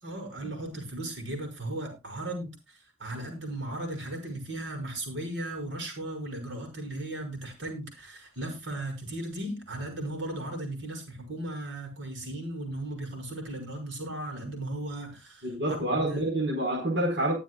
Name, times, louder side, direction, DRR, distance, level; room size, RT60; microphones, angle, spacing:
voice 1, 0.0-16.2, right 1 dB, 75° right, 6.1 m, -36 dB
voice 2, 15.4-17.3, right 1 dB, 60° right, 4.7 m, -27 dB
21.0 x 7.5 x 2.3 m
head